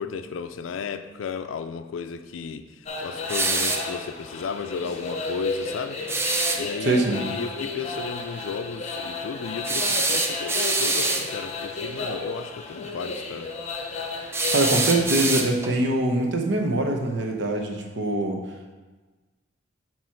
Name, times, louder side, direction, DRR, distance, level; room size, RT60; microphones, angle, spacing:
voice 1, 0.0-6.0 6.5-13.5, left 5 dB, 90° left, 9 dB, 0.4 m, -34 dB
sound 1, 2.9-15.0, left 3 dB, 35° left, 0.7 m, -33 dB
sound 2, 3.3-3.9 6.1-6.6 9.6-11.3 14.3-15.8, right 3 dB, 15° right, 0.5 m, -25 dB
voice 2, 6.8-7.2 14.2-18.4, right 2 dB, 65° right, 2 dB, 0.9 m, -24 dB
7.4 x 3.0 x 5.7 m, 1.3 s
head